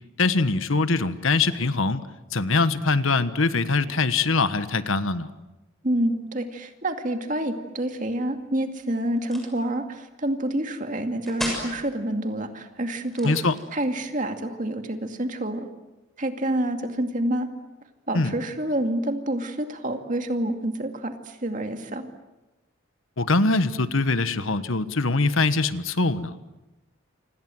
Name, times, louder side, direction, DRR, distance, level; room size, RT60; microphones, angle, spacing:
voice 1, 0.2-2.0 2.3-5.3 13.2-13.6 18.1-18.3 23.2-26.3, left 3 dB, 75° left, 12 dB, 1.3 m, -23 dB
voice 2, 5.8-13.3 13.7-15.7 16.2-17.5 18.1-22.1, right 1 dB, 35° right, 6 dB, 2.4 m, -28 dB
sound 1, 9.2-9.6 11.3-11.7 13.0-13.9, equal, ahead, 7.0 m, -34 dB
29.0 x 26.5 x 7.8 m, 1.0 s
head